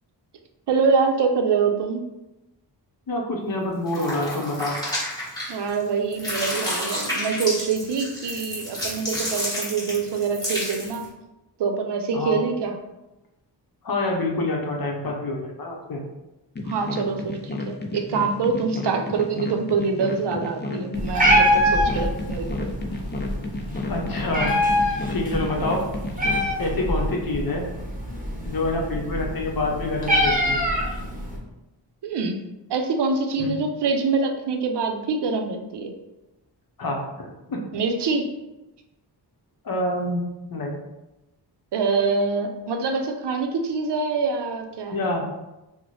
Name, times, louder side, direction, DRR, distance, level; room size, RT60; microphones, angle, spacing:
voice 1, 0.7-2.0 5.5-11.0 11.6-12.7 16.6-22.7 32.0-32.4 32.7-35.9 37.7-38.2 41.7-45.0, right 4 dB, 70° right, 4 dB, 0.5 m, -25 dB
voice 2, 3.1-4.8 12.1-12.4 13.8-16.0 23.9-24.5 25.1-25.8 26.6-27.7 28.4-30.6 33.4-33.6 36.8-37.6 39.6-40.2 40.5-40.8 44.9-45.3, left 2 dB, 55° left, 0 dB, 0.7 m, -27 dB
sound 1, 3.9-5.8 6.1-11.1, left 1 dB, 10° left, 1.3 m, -30 dB
sound 2, 16.6-26.5, left 2 dB, 25° left, 0.4 m, -32 dB
Meow, 20.9-31.4, equal, 20° right, 0.8 m, -24 dB
3.0 x 2.1 x 4.0 m, 0.99 s
wide cardioid pair, 95°, 43 cm